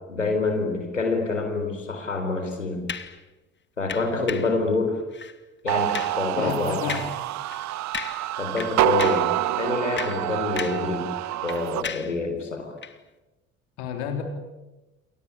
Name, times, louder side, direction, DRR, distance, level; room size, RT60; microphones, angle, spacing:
voice 1, 0.1-2.9 3.8-5.0 5.6-6.8 8.4-11.1 11.4-12.7, left 3 dB, 85° left, 4 dB, 4.0 m, -27 dB
sound 1, 2.9-3.2 3.9-4.6 5.1-5.4 5.7-6.2 6.9-7.2 7.5-7.6 7.9-8.3 8.6-9.3 9.8-10.9 11.2-12.2 12.8-13.0, left 6 dB, 30° left, 2.2 m, -35 dB
sound 2, 5.7-11.8, right 14 dB, 50° right, 1.2 m, -27 dB
voice 2, 6.4-7.1 13.8-14.2, left 7 dB, 65° left, 4 dB, 3.9 m, -30 dB
29.0 x 23.5 x 8.7 m, 1.1 s
figure-of-eight pair, 60°, 36 cm